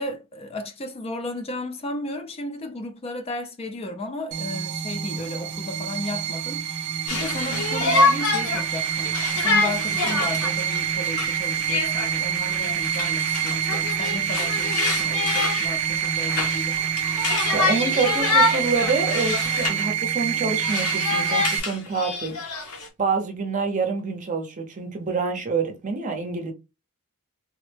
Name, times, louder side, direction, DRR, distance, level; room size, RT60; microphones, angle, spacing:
voice 1, 0.0-16.8, left 1 dB, 25° left, 0.4 m, -34 dB
sound 1, 4.3-21.6, right 9 dB, 75° right, 0.5 m, -26 dB
Conversation, 7.1-19.9 20.2-22.9, left 3 dB, 90° left, 0.9 m, -26 dB
voice 2, 17.5-22.6 23.0-26.5, right 4 dB, 35° right, 0.6 m, -27 dB
3.4 x 2.1 x 3.2 m
head